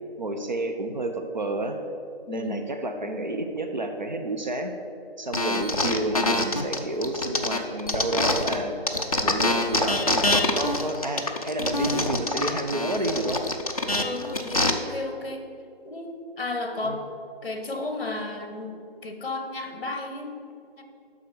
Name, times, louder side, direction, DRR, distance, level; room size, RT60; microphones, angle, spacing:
voice 1, 0.2-1.8 2.3-4.7 5.2-8.7 9.2-13.4 16.8-17.0, right 2 dB, 45° right, 5 dB, 0.8 m, -30 dB
voice 2, 2.3-2.6 14.0-15.5 15.8-17.0 17.4-18.7 19.0-20.5 20.8-20.9, left 2 dB, 60° left, 5 dB, 1.2 m, -33 dB
sound 1, 5.3-8.6 8.9-14.7, left 2 dB, 35° left, 0.6 m, -25 dB
7.7 x 5.9 x 6.6 m, 2.5 s
figure-of-eight pair, 175°, 30 cm